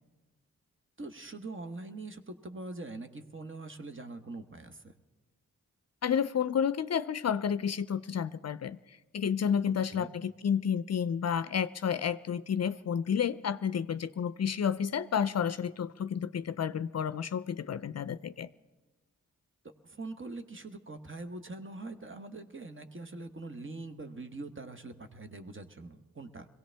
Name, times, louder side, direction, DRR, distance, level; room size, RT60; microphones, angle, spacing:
voice 1, 1.0-4.8 9.9-10.1 19.8-26.5, right 2 dB, 35° right, 8 dB, 1.2 m, -43 dB
voice 2, 6.0-8.8 9.1-18.5, left 7 dB, 50° left, 15 dB, 0.5 m, -31 dB
22.5 x 16.5 x 3.4 m, 1.2 s
cardioid pair, 45°, 33 cm